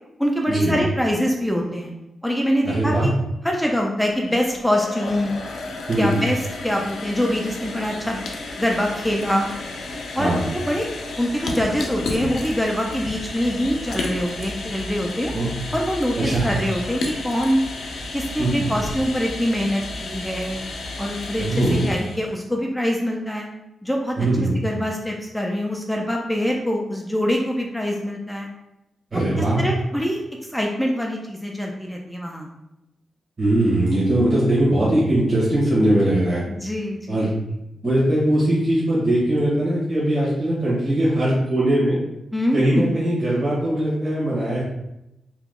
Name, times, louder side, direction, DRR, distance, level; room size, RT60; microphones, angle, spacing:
voice 1, 0.2-1.9 2.2-3.1 3.4-5.4 5.9-8.2 8.6-9.5 10.1-10.3 10.7-10.9 11.2-15.3 15.7-17.6 18.1-20.6 21.0-23.5 23.8-24.2 24.6-28.5 29.4-30.2 30.5-32.5 36.5-37.3 42.3-42.9, equal, ahead, 0 dB, 0.4 m, -24 dB
voice 2, 2.6-3.1 5.9-6.2 10.2-10.5 15.3-15.5 16.2-16.4 18.4-18.7 21.4-21.9 24.2-24.5 29.1-29.6 33.4-36.4 37.1-37.3 37.8-42.0 42.5-44.6, right 1 dB, 40° right, -8 dB, 1.3 m, -20 dB
sound 1, 4.1-22.3, left 2 dB, 80° left, 0.5 m, -32 dB
2.9 x 2.3 x 3.6 m, 0.89 s
cardioid pair, 95°, 0 cm